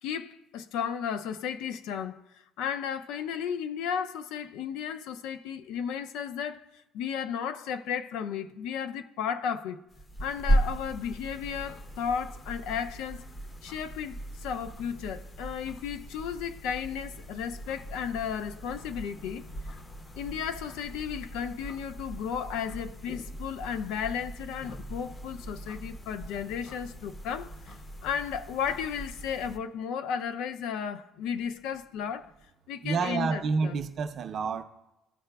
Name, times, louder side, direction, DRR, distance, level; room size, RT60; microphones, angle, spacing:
voice 1, 0.0-9.8 10.2-13.3 13.6-19.8 20.2-32.3 32.7-33.8, left 7 dB, 90° left, 0.4 m, -34 dB
sound 1, 9.9-29.6, right 1 dB, 20° left, 0.5 m, -37 dB
voice 2, 32.8-34.6, right 5 dB, 45° right, 0.5 m, -29 dB
13.5 x 4.7 x 2.3 m
cardioid pair, 155°, 0 cm